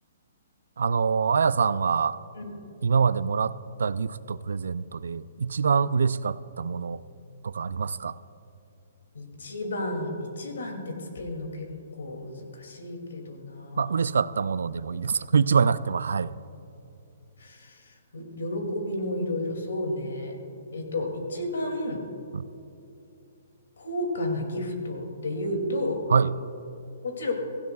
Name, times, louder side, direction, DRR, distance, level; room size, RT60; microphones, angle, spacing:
voice 1, 0.8-2.2 2.8-3.5 3.8-7.0 7.4-8.1 13.8-16.3 22.3-22.5 26.1-26.3, right 6 dB, 80° right, 17 dB, 0.4 m, -25 dB
voice 2, 9.1-11.7 12.0-14.0 17.4-20.4 20.7-22.0 23.8-26.0 27.0-27.3, left 1 dB, 90° left, 3 dB, 2.5 m, -32 dB
17.5 x 15.5 x 2.3 m, 2.8 s
hypercardioid pair, 180°, 0 cm